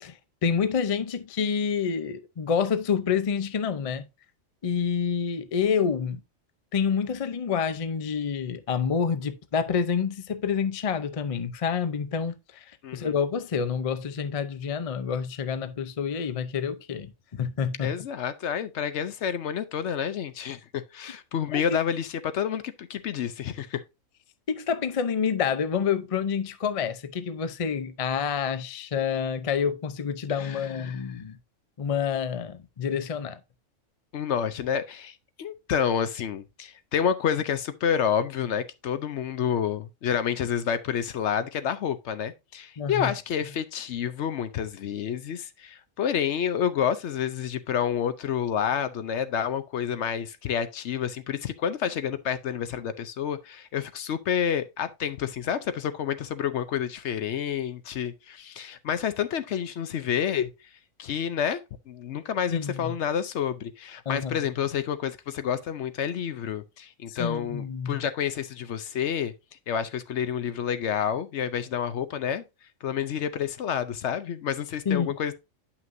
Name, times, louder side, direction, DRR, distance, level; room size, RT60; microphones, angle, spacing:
voice 1, 0.0-4.1 4.6-6.2 6.7-12.7 12.9-18.0 21.5-21.6 24.5-31.4 31.8-33.4 42.8-43.1 62.5-62.9 64.1-64.4 67.1-68.0 74.9-75.1, left 6 dB, 40° left, 0.5 m, -28 dB
voice 2, 12.8-13.1 17.8-23.8 30.3-31.2 34.1-60.5 61.0-61.6 61.9-69.3 69.7-72.4 72.8-75.3, left 8 dB, 65° left, 0.9 m, -29 dB
9.2 x 5.8 x 2.6 m
omnidirectional pair, 1.4 m